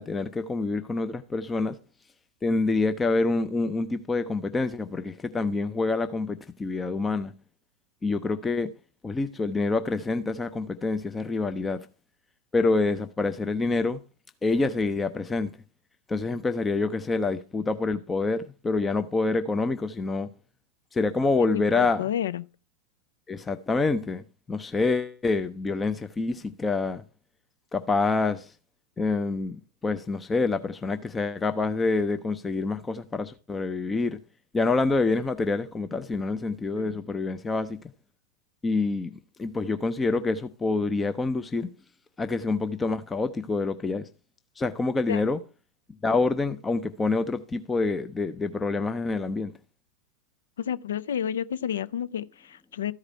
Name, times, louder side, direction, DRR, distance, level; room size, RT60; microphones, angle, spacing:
voice 1, 0.0-1.8 2.4-7.3 8.0-8.7 9.0-11.8 12.5-14.0 14.4-15.5 16.1-20.3 20.9-22.0 23.3-27.0 27.7-28.5 29.0-34.2 34.5-37.8 38.6-39.1 39.4-41.7 42.2-44.1 44.6-45.4 46.0-49.5, left 3 dB, 15° left, 0.5 m, -27 dB
voice 2, 21.5-22.4 36.7-37.0 45.1-45.2 50.6-52.9, left 9 dB, 65° left, 0.4 m, -31 dB
13.5 x 4.9 x 5.5 m
figure-of-eight pair, 90°, 0 cm